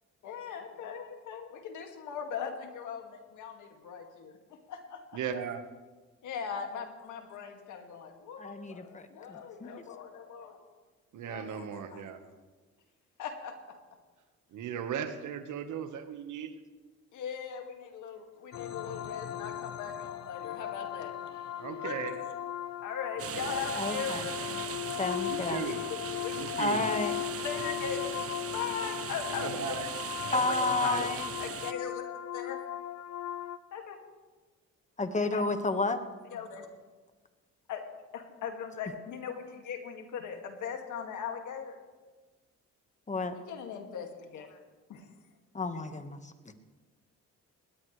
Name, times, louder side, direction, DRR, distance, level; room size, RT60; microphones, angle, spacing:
voice 1, 0.2-5.2 6.2-10.6 11.1-12.1 13.2-13.8 17.1-21.4 21.8-22.2 22.8-24.6 25.1-25.3 25.6-26.5 27.4-29.8 30.2-32.0 32.3-32.6 33.7-34.0 35.3-35.5 36.3-36.7 37.7-37.8 38.1-41.8 43.3-44.6 44.9-45.1, left 7 dB, 80° left, 4 dB, 2.2 m, -40 dB
voice 2, 5.1-5.6 11.1-12.2 14.5-16.5 21.6-22.1 23.2-23.5 25.2-25.8 26.3-26.9 29.4-29.9 30.7-31.1, right 8 dB, 80° right, 8 dB, 1.4 m, -37 dB
voice 3, 8.4-9.7 23.7-24.2 24.9-25.7 26.6-27.2 30.3-31.3 35.0-36.0 43.1-43.3 45.5-46.3, left 3 dB, 25° left, 8 dB, 1.5 m, -31 dB
sound 1, 18.5-33.6, left 12 dB, 60° left, 0.8 m, -38 dB
sound 2, 23.2-31.7, right 9 dB, 50° right, 0.8 m, -39 dB
20.5 x 17.5 x 3.3 m, 1.3 s
cardioid pair, 90°, 30 cm